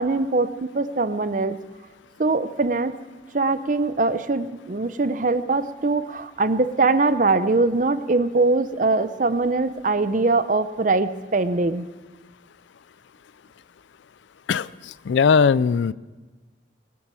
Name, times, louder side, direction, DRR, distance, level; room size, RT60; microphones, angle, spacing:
voice 1, 0.0-1.5 2.2-3.0 3.3-11.8, right 3 dB, 40° right, 13 dB, 0.6 m, -22 dB
voice 2, 14.5-15.9, left 5 dB, 65° left, 19 dB, 0.4 m, -19 dB
20.5 x 10.0 x 6.2 m, 1.3 s
head